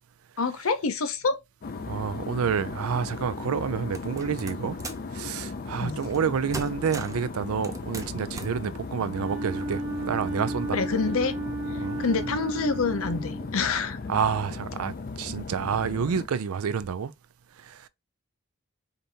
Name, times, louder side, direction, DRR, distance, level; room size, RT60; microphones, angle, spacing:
voice 1, 0.4-1.4 5.8-6.0 10.7-11.3 12.0-14.0, left 4 dB, 75° left, 0.7 m, -27 dB
sound 1, 1.6-16.3, left 4 dB, 40° left, 0.4 m, -37 dB
voice 2, 1.9-4.8 5.1-10.8 11.8-12.0 14.1-17.1 17.6-17.9, right 6 dB, 85° right, 0.4 m, -29 dB
sound 2, 3.9-5.1 6.0-6.3 6.5-7.3 7.6-8.6, right 3 dB, 15° right, 0.5 m, -39 dB
Wind instrument woodwind instrument, 9.0-13.8, right 2 dB, 60° right, 1.3 m, -34 dB
5.1 x 2.7 x 2.8 m
head